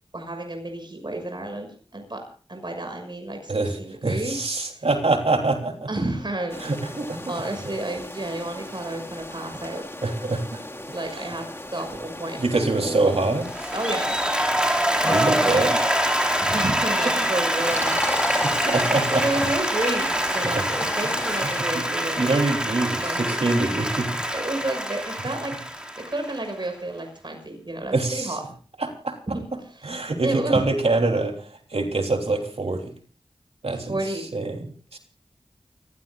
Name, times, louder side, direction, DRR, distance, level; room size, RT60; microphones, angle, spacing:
voice 1, 0.1-2.2 2.5-4.4 5.9-6.6 7.3-9.9 10.9-11.4 11.7-13.1 13.7-14.1 15.0-15.6 16.4-18.5 19.1-22.4 23.0-23.4 24.3-25.5 26.1-28.4 29.3-29.9 30.2-30.6 33.9-34.3, right 1 dB, 50° right, 4 dB, 6.3 m, -31 dB
voice 2, 3.5-5.7 6.6-7.2 10.0-10.6 12.4-13.7 15.0-15.8 17.2-17.3 18.3-19.2 21.4-21.9 22.2-24.2 27.9-28.4 28.8-29.2 29.8-32.9 33.6-33.9 34.3-35.0, right 2 dB, 80° right, 3 dB, 3.4 m, -25 dB
sound 1, 6.5-21.6, left 1 dB, 25° left, 2.5 m, -35 dB
Applause, 13.4-26.6, equal, 10° right, 4.1 m, -25 dB
29.0 x 15.5 x 2.4 m, 0.40 s
wide cardioid pair, 45°, 10 cm